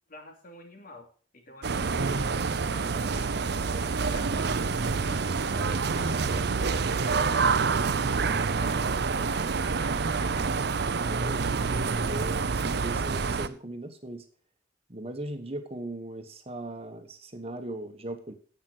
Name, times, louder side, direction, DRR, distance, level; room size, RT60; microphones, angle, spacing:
voice 1, 0.1-1.1 1.3-4.5 4.8-10.4, left 2 dB, 50° left, 2 dB, 3.0 m, -48 dB
sound 1, 1.6-13.5, right 4 dB, 60° right, 0.6 m, -27 dB
voice 2, 11.1-14.2 14.9-18.3, right 1 dB, 35° right, 6 dB, 1.3 m, -38 dB
10.0 x 8.2 x 6.2 m, 0.43 s
head